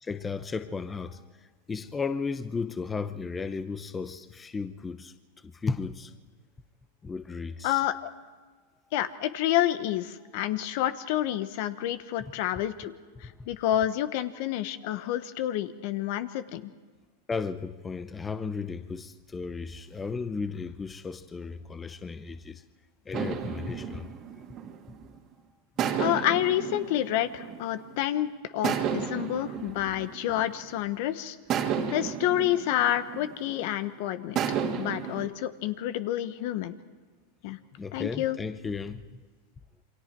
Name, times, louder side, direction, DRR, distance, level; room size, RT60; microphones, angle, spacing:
voice 1, 0.0-6.1 7.0-7.8 13.2-13.5 17.3-22.6 23.1-24.1 37.8-39.2, left 4 dB, 15° left, 0.8 m, -35 dB
voice 2, 7.6-8.1 8.9-12.9 13.2-16.7 26.0-28.3 28.5-31.4 31.9-34.4 34.8-36.7 37.4-37.6 37.9-38.4, left 13 dB, 60° left, 1.2 m, -29 dB
sound 1, 23.1-25.2 25.8-28.0 28.6-30.9 31.5-33.7 34.3-35.3, right 8 dB, 35° right, 2.2 m, -32 dB
28.5 x 24.0 x 4.6 m
supercardioid pair, 135°, 0 cm